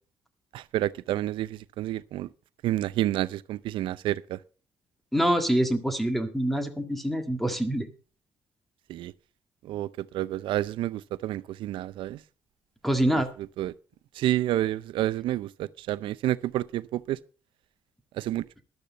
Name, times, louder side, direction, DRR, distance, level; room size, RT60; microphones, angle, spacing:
voice 1, 0.5-2.3 2.6-4.4 8.9-9.1 9.6-12.2 13.6-13.7 14.2-17.2 18.2-18.4, right 14 dB, 90° right, 0.6 m, -29 dB
voice 2, 5.1-7.9 12.8-13.3, right 1 dB, ahead, 1.7 m, -25 dB
13.5 x 12.0 x 4.1 m
cardioid pair, 140°, 8 cm